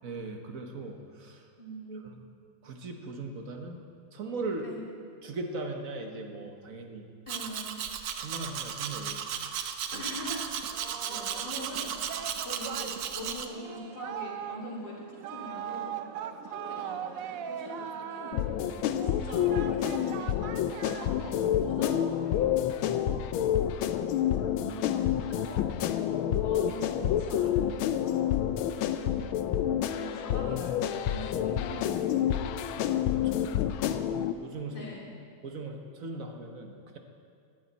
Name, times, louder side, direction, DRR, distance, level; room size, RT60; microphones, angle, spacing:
voice 1, 0.0-1.4 1.9-2.2 2.6-3.8 4.1-4.7 5.2-7.1 8.2-9.2 9.6-10.0 22.9-23.4 32.4-33.5 34.2-34.8 35.4-37.0, right 3 dB, 50° right, 4 dB, 1.3 m, -39 dB
voice 2, 1.6-2.2 4.6-4.8 7.3-7.9 9.9-10.7 11.1-12.0 12.4-15.1 15.3-15.9 16.4-18.5 19.0-22.5 24.6-27.6 27.9-28.1 28.8-29.2 29.9-32.1 32.4-32.6 34.7-35.1, left 1 dB, 65° left, -4 dB, 3.5 m, -42 dB
Domestic sounds home sounds, 7.3-13.5, right 8 dB, 70° right, 1.3 m, -35 dB
Singing, 10.6-21.6, right 9 dB, 85° right, 0.7 m, -40 dB
sound 1, 18.3-34.3, left 10 dB, 90° left, 1.4 m, -28 dB
19.5 x 12.0 x 4.1 m, 2.3 s
omnidirectional pair, 2.2 m